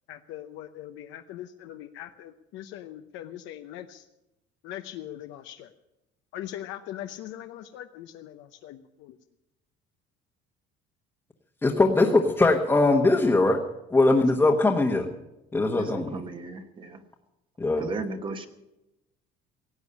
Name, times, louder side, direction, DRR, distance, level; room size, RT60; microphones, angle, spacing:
voice 1, 0.1-4.1 4.6-5.7 6.3-9.2 14.0-14.1 15.6-15.8, left 12 dB, 75° left, 6 dB, 0.8 m, -41 dB
voice 2, 11.6-13.6 13.9-15.1 15.5-16.2 17.6-17.9, left 2 dB, 10° left, 0 dB, 1.2 m, -21 dB
voice 3, 15.8-17.0 17.8-18.5, right 3 dB, 25° right, 6 dB, 1.1 m, -35 dB
17.5 x 8.2 x 9.6 m, 0.94 s
cardioid pair, 160°, 20 cm